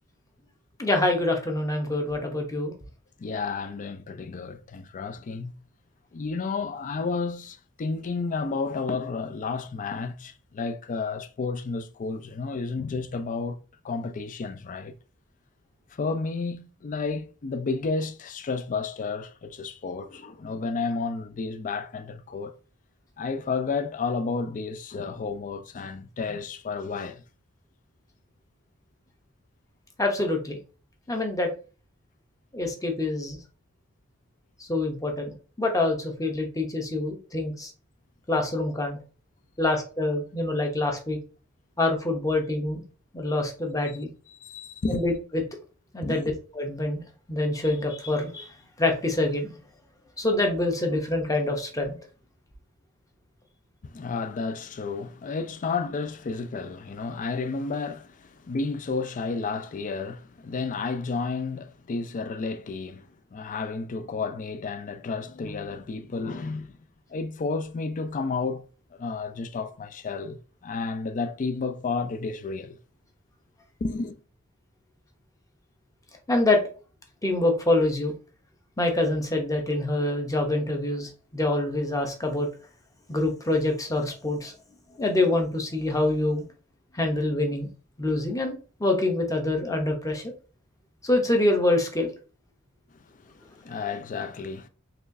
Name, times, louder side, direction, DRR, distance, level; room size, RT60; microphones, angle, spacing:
voice 1, 0.8-2.7 30.0-30.6 31.1-31.5 32.5-33.4 34.6-37.7 38.3-39.0 39.6-41.2 41.8-42.8 43.1-44.1 44.9-45.4 45.9-48.5 48.8-49.6 50.2-52.0 76.3-76.6 77.2-78.1 78.8-82.5 83.1-84.5 85.0-86.4 86.9-87.7 88.0-90.2 91.0-92.1, left 2 dB, 15° left, 0.8 m, -26 dB
voice 2, 3.2-5.5 6.1-13.6 13.8-14.9 16.0-22.5 23.2-27.2 44.4-45.0 46.0-46.2 53.8-63.0 63.3-66.7 67.1-68.7 68.9-72.8 73.8-74.2 93.3-94.7, left 4 dB, 40° left, 0.4 m, -31 dB
4.2 x 3.0 x 2.6 m
head